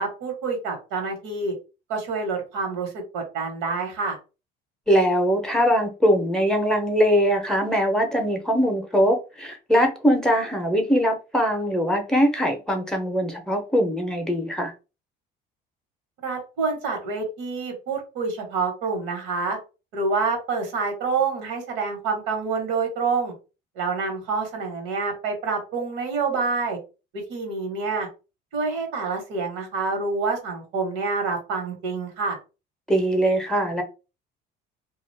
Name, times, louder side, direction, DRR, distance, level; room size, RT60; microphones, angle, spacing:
voice 1, 0.0-1.5 1.9-4.2 16.2-19.6 19.9-23.3 23.7-26.8 27.1-28.1 28.5-32.4, right 4 dB, 90° right, 1.2 m, -27 dB
voice 2, 4.9-14.7 32.9-33.8, equal, 5° left, 0.6 m, -21 dB
2.4 x 2.3 x 3.3 m
cardioid pair, 120°, 20 cm